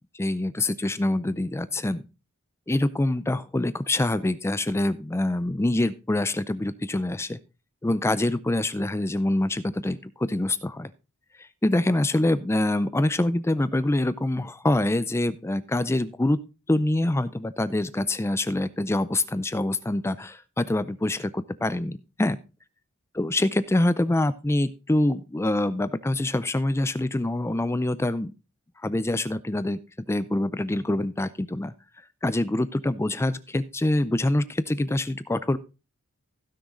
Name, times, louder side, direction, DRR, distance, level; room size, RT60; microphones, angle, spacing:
voice 1, 0.1-2.0 2.7-7.4 7.8-10.9 11.4-16.4 16.7-22.4 23.2-28.3 28.8-29.8 30.1-31.7 32.2-35.6, left 1 dB, 10° left, 15 dB, 0.4 m, -25 dB
15.5 x 6.3 x 3.7 m, 0.29 s
head